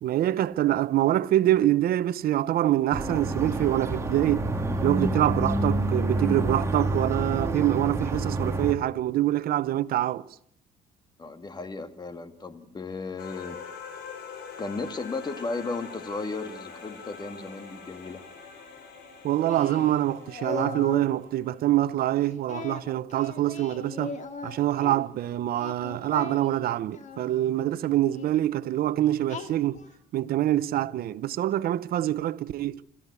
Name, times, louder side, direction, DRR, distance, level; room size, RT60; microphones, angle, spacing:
voice 1, 0.0-4.5 4.8-10.2 19.2-24.2 24.4-29.8 30.1-32.8, right 13 dB, 65° right, 0.9 m, -25 dB
sound 1, 2.9-8.7, right 2 dB, 15° right, 2.3 m, -28 dB
voice 2, 11.2-13.6 14.6-18.2, left 3 dB, 25° left, 2.0 m, -35 dB
sound 2, 13.2-21.8, left 6 dB, 75° left, 5.4 m, -44 dB
Singing, 19.5-21.1 22.5-25.0 25.5-27.3 28.1-28.3 29.3-29.9, left 5 dB, 45° left, 2.3 m, -39 dB
27.5 x 13.5 x 8.4 m
cardioid pair, 110°, 17 cm